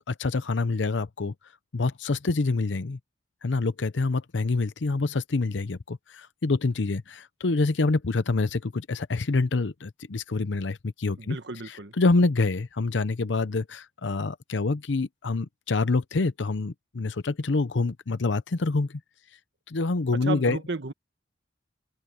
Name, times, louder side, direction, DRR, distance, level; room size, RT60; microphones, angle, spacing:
voice 1, 0.1-1.3 1.7-3.0 3.4-11.4 11.7-18.9 19.7-20.6, left 3 dB, 80° left, 0.7 m, -26 dB
voice 2, 11.2-11.9 20.2-20.9, right 3 dB, 70° right, 1.3 m, -33 dB
head